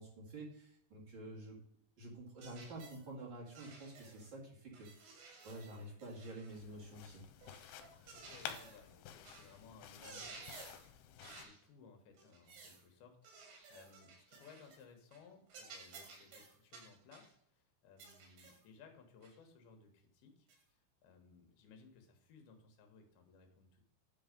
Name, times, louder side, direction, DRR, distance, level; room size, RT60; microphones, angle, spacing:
voice 1, 0.0-1.6 2.0-4.9 5.4-7.2, right 1 dB, 60° right, -4 dB, 1.2 m, -49 dB
sound 1, 2.4-3.1 3.5-4.3 4.7-6.6 7.4-8.9 9.3-9.6 9.9-10.9 11.2-11.6 12.2-12.8 13.2-14.8 15.1-15.3 15.5-17.3 18.0-18.7 19.2-19.4 20.5-20.6, right 4 dB, 85° right, 4.1 m, -55 dB
sound 2, 6.5-11.5, left 9 dB, 90° left, 2.8 m, -52 dB
voice 2, 8.1-10.9 11.2-23.8, left 5 dB, 70° left, 4 dB, 2.8 m, -61 dB
9.7 x 3.9 x 5.1 m, 0.73 s
omnidirectional pair, 5.0 m